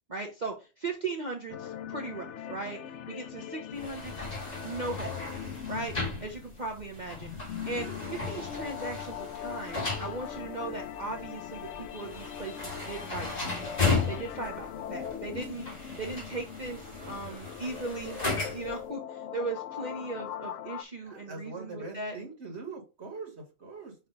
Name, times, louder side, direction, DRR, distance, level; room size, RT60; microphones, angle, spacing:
voice 1, 0.1-2.8 3.1-4.2 4.6-5.2 5.7-13.5 14.1-15.7 16.0-18.2 18.5-22.2, right 3 dB, 35° right, 1.0 m, -38 dB
sound 1, 1.5-20.8, left 10 dB, 70° left, 0.9 m, -41 dB
sound 2, 3.7-18.8, left 4 dB, 30° left, 2.1 m, -36 dB
voice 2, 16.7-17.3 17.6-17.8 21.0-24.0, right 3 dB, 55° right, 1.8 m, -43 dB
5.9 x 3.2 x 5.0 m
omnidirectional pair, 1.4 m